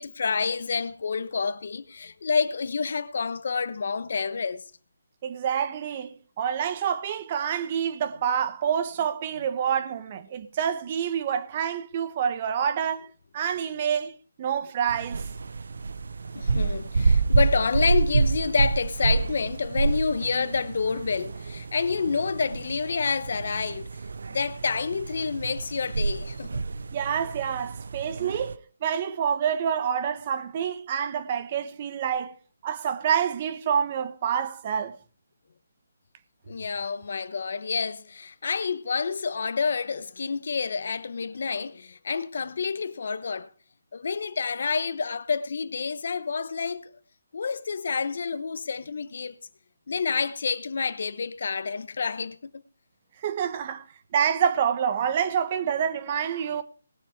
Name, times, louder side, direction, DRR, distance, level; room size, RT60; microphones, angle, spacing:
voice 1, 0.0-4.6 16.3-23.9 24.3-26.6 36.5-43.5 43.9-46.9 47.3-49.4 49.9-52.5, left 5 dB, 60° left, 1.1 m, -28 dB
voice 2, 5.2-6.1 6.4-13.1 13.3-14.1 14.4-15.2 26.9-32.3 32.6-34.9 53.2-53.8 54.1-56.6, right 8 dB, 35° right, 1.2 m, -27 dB
sound 1, 14.9-28.6, right 4 dB, 70° right, 0.8 m, -28 dB
19.5 x 7.2 x 4.8 m
hypercardioid pair, 160°, 0 cm